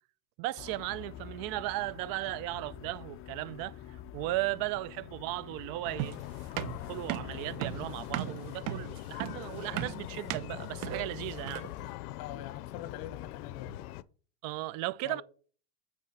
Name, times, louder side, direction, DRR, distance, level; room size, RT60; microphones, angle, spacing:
voice 1, 0.4-6.1 6.6-11.7 14.4-15.2, right 18 dB, 50° right, 0.5 m, -36 dB
sound 1, 0.6-8.2, left 10 dB, 30° left, 0.5 m, -47 dB
sound 2, 5.8-14.0, left 16 dB, 85° left, 0.6 m, -42 dB
sound 3, 6.0-11.8, right 13 dB, 75° right, 0.9 m, -37 dB
voice 2, 12.2-13.8 15.0-15.2, left 11 dB, 55° left, 1.2 m, -44 dB
8.7 x 4.3 x 4.3 m
supercardioid pair, 120°, 43 cm